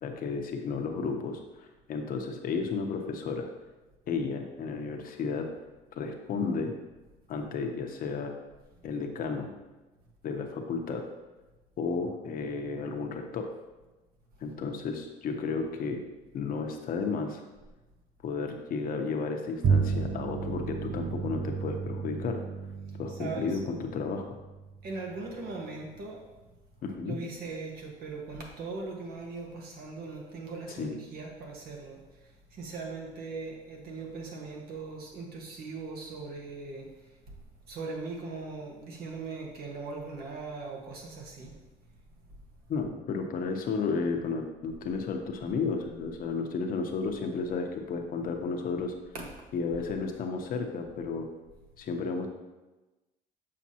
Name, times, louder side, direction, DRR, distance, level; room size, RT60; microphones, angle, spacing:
voice 1, 0.0-3.5 4.1-5.5 5.9-6.7 7.3-8.3 8.8-9.5 10.2-11.1 11.8-13.5 14.4-16.0 16.3-17.4 18.2-22.4 23.0-24.2 26.8-27.2 30.8-31.0 42.7-48.9 49.5-51.3 51.8-52.3, left 4 dB, 55° left, 4 dB, 0.8 m, -33 dB
Bowed string instrument, 19.6-25.3, right 6 dB, 40° right, 0.5 m, -32 dB
voice 2, 23.1-23.6 24.8-26.2 27.0-37.2 37.7-41.6 49.1-49.3, right 3 dB, 65° right, 0 dB, 1.4 m, -40 dB
7.4 x 5.1 x 2.9 m, 1.1 s
cardioid pair, 110°, 17 cm